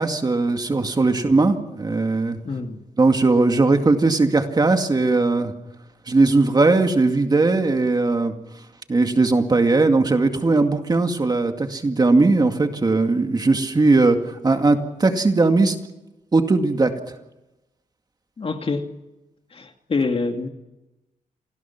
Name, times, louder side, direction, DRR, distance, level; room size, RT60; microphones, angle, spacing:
voice 1, 0.0-2.4 3.0-5.5 6.1-8.3 8.9-15.8 16.3-16.9, right 3 dB, 30° right, 5 dB, 2.2 m, -19 dB
voice 2, 2.4-2.8 18.4-18.9 19.5-20.5, left 4 dB, 45° left, 5 dB, 2.4 m, -26 dB
28.0 x 20.5 x 6.0 m, 0.98 s
wide cardioid pair, 115°, 14 cm